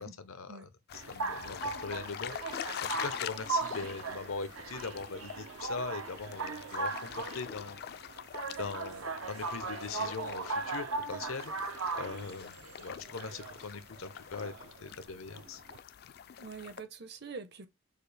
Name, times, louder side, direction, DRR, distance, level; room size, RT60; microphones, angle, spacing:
voice 1, 0.0-7.8 8.6-11.5 11.9-14.5 14.8-15.6, left 4 dB, 80° left, 0.7 m, -41 dB
sound 1, 0.9-16.8, left 9 dB, 50° left, 0.3 m, -45 dB
sound 2, 0.9-15.8, right 4 dB, 85° right, 0.7 m, -38 dB
voice 2, 16.4-17.7, right 4 dB, 50° right, 0.7 m, -45 dB
6.6 x 2.4 x 3.3 m
head